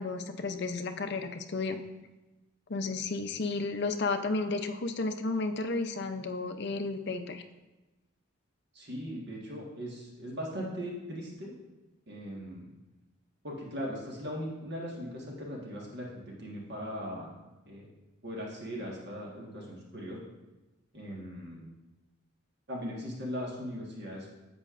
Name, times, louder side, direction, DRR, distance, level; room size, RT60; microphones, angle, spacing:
voice 1, 0.0-1.8 2.7-7.4, left 3 dB, 50° left, 7 dB, 0.6 m, -32 dB
voice 2, 8.7-11.5 12.1-12.7 13.4-17.3 17.7-17.9 18.2-20.2 20.9-21.7 22.7-24.3, equal, 50° right, -3 dB, 1.5 m, -39 dB
10.0 x 7.6 x 2.5 m, 1.1 s
head